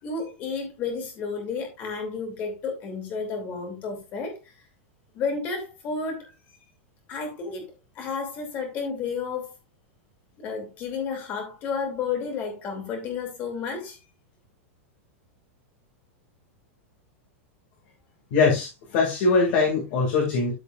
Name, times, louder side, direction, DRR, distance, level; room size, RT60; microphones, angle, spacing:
voice 1, 0.0-4.5 5.1-6.3 7.1-7.7 7.9-9.5 10.4-14.0, left 5 dB, 25° left, 2.9 m, -31 dB
voice 2, 18.3-20.5, left 4 dB, 40° left, 2.3 m, -22 dB
13.5 x 5.1 x 2.5 m
supercardioid pair, 180°, 7 cm